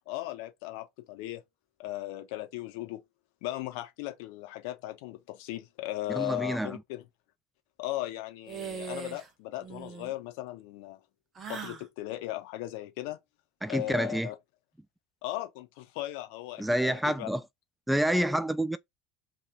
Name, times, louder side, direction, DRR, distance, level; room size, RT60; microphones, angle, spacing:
voice 1, 0.1-1.4 1.8-3.0 3.4-7.0 7.8-11.0 11.5-13.2 13.7-14.3 15.2-17.3, left 16 dB, 65° left, 0.8 m, -37 dB
voice 2, 6.1-6.8 13.6-14.3 16.6-17.4 17.9-18.8, right 1 dB, 5° right, 0.3 m, -28 dB
sound 1, 8.5-9.3 9.6-10.1 11.3-11.9, right 6 dB, 35° right, 0.8 m, -40 dB
2.9 x 2.5 x 3.6 m
hypercardioid pair, 75°, 0 cm